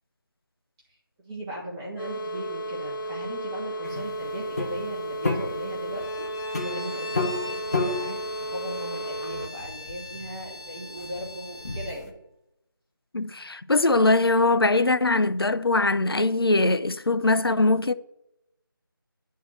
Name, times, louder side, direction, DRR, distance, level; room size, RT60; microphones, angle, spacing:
voice 1, 1.2-12.2, right 1 dB, 10° right, 2.2 m, -38 dB
sound 1, 2.0-9.5, right 1 dB, 65° left, 2.0 m, -34 dB
sound 2, 3.8-12.1, left 3 dB, 40° left, 1.3 m, -33 dB
Bowed string instrument, 5.9-12.0, left 2 dB, 15° left, 0.5 m, -41 dB
voice 2, 13.1-17.9, left 2 dB, 90° left, 0.6 m, -21 dB
9.2 x 4.7 x 7.3 m
figure-of-eight pair, 170°, 12 cm